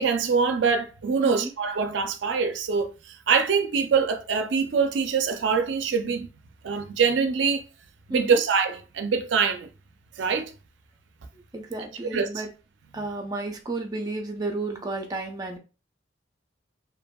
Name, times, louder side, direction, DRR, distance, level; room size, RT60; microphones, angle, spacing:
voice 1, 0.0-6.3 6.6-7.6 8.1-9.7 10.2-10.5 12.1-12.3, right 5 dB, 80° right, 0.4 m, -24 dB
voice 2, 1.2-1.5 8.1-8.4 11.5-12.5 12.9-15.6, right 2 dB, 20° right, 0.6 m, -32 dB
2.7 x 2.6 x 2.2 m
head